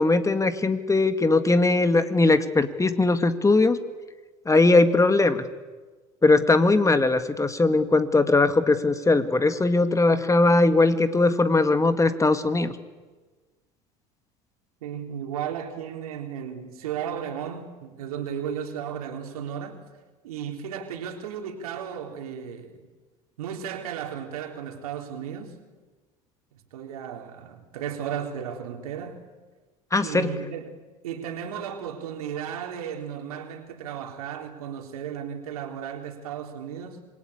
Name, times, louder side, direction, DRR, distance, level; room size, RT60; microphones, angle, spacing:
voice 1, 0.0-3.8 4.5-5.4 6.2-12.7 29.9-30.3, left 3 dB, 15° left, 2.0 m, -20 dB
voice 2, 14.8-19.8 20.2-22.8 23.4-25.6 26.7-29.2 30.0-30.7 31.0-37.1, right 8 dB, 75° right, 3.6 m, -34 dB
27.0 x 22.0 x 8.7 m
hypercardioid pair, 70°, 19 cm